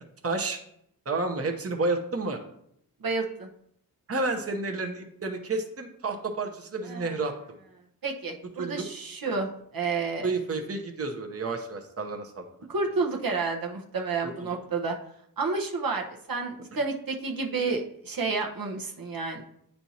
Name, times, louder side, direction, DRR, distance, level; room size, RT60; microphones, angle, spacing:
voice 1, 0.2-0.6 1.1-2.4 4.1-7.3 8.6-8.9 10.2-12.5 14.2-14.5, right 3 dB, 40° right, 4 dB, 0.8 m, -30 dB
voice 2, 3.0-3.5 6.8-7.1 8.0-10.3 12.7-15.0 15.4-19.4, right 4 dB, 65° right, 1 dB, 0.9 m, -30 dB
8.9 x 4.4 x 2.8 m, 0.73 s
cardioid pair, 55°, 37 cm